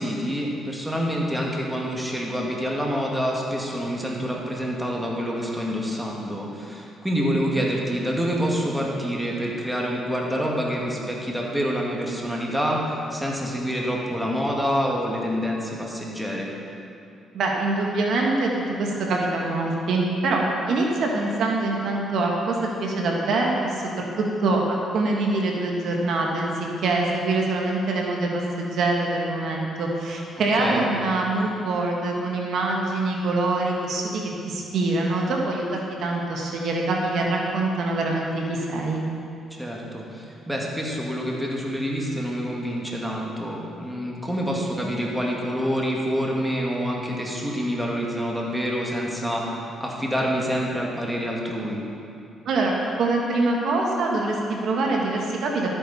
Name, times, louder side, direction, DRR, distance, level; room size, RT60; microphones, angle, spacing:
voice 1, 0.0-12.8 13.1-16.5 30.6-30.8 39.5-51.8, equal, 5° right, -2 dB, 2.0 m, -27 dB
voice 2, 17.3-18.5 18.8-24.1 24.4-39.0 52.4-52.7 53.0-55.7, right 2 dB, 70° right, -1 dB, 1.5 m, -24 dB
12.5 x 8.8 x 4.2 m, 2.6 s
cardioid pair, 90°, 0 cm